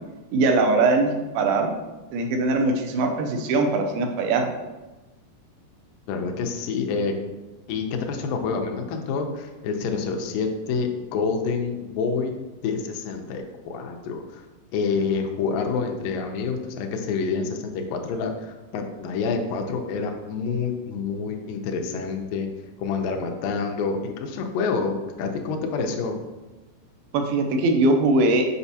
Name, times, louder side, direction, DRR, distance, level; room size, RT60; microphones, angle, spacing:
voice 1, 0.3-1.7 2.1-4.5 27.1-28.5, right 2 dB, 85° right, 4 dB, 2.5 m, -21 dB
voice 2, 6.1-7.1 7.7-12.3 12.6-14.5 14.7-22.5 22.8-26.2, left 5 dB, 80° left, 3 dB, 2.1 m, -27 dB
6.9 x 5.0 x 2.7 m, 1.1 s
omnidirectional pair, 4.4 m